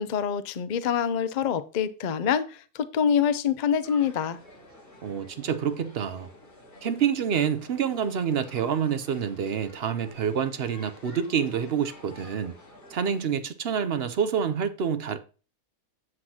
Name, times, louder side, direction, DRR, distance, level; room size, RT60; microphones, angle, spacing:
voice 1, 0.0-4.4, left 8 dB, 60° left, 0.4 m, -26 dB
sound 1, 3.8-13.3, left 1 dB, 35° left, 5.2 m, -50 dB
voice 2, 5.0-6.3 6.8-12.5 12.9-15.2, right 7 dB, 55° right, 0.7 m, -27 dB
7.8 x 7.7 x 2.8 m
omnidirectional pair, 1.5 m